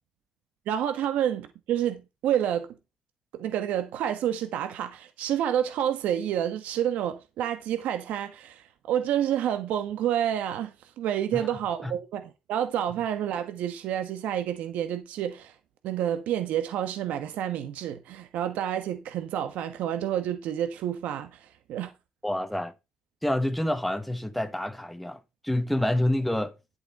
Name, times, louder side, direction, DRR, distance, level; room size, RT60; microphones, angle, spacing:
voice 1, 0.7-2.7 3.4-15.5 15.8-21.9, right 10 dB, 75° right, 1.3 m, -29 dB
voice 2, 22.2-22.7 23.2-26.5, left 1 dB, ahead, 1.1 m, -28 dB
11.0 x 7.1 x 4.2 m
cardioid pair, 140°, 3 cm